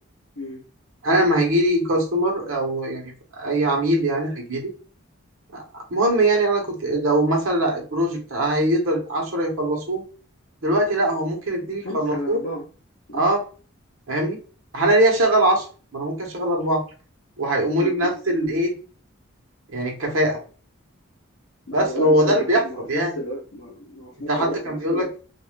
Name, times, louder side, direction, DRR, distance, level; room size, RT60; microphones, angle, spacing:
voice 1, 1.0-4.7 5.5-5.6 5.9-10.0 10.6-12.4 13.1-13.4 14.1-14.4 14.7-15.6 15.9-16.8 17.4-18.7 19.7-20.4 21.7-23.1 24.3-25.2, right 1 dB, 75° right, 1 dB, 1.0 m, -21 dB
voice 2, 11.5-12.7 13.1-13.3 17.7-18.1 21.7-25.2, equal, 70° left, -2 dB, 0.7 m, -32 dB
2.5 x 2.4 x 3.2 m, 0.37 s
head